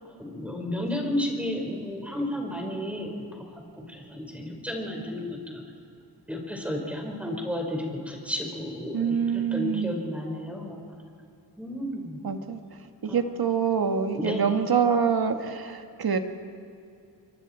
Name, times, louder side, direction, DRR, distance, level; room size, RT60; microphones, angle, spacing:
voice 1, 0.2-3.1 3.8-5.6 6.3-9.2 9.5-10.8 11.6-12.2 13.1-13.2 14.1-14.4, left 1 dB, 5° right, 1 dB, 4.9 m, -32 dB
voice 2, 8.9-10.0 12.2-12.6 13.0-16.2, right 6 dB, 60° right, 6 dB, 1.8 m, -25 dB
27.5 x 23.5 x 4.5 m, 2.5 s
wide cardioid pair, 95°, 41 cm